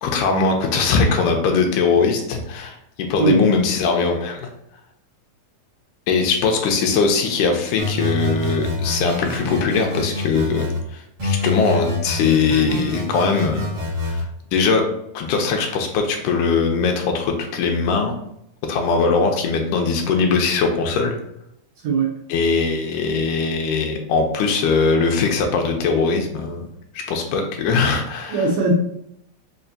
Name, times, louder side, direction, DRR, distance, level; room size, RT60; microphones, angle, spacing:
voice 1, 0.0-4.5 6.1-13.7 14.0-14.2 14.5-14.9 15.1-18.2 18.7-21.2 22.3-26.7 26.9-28.5, left 4 dB, 85° left, 3 dB, 2.1 m, -20 dB
sound 1, 7.8-10.8 11.2-14.2, left 2 dB, 50° right, 1.3 m, -26 dB
voice 2, 28.3-28.7, right 5 dB, 75° right, -3 dB, 1.6 m, -19 dB
5.2 x 2.5 x 2.6 m, 0.76 s
omnidirectional pair, 3.6 m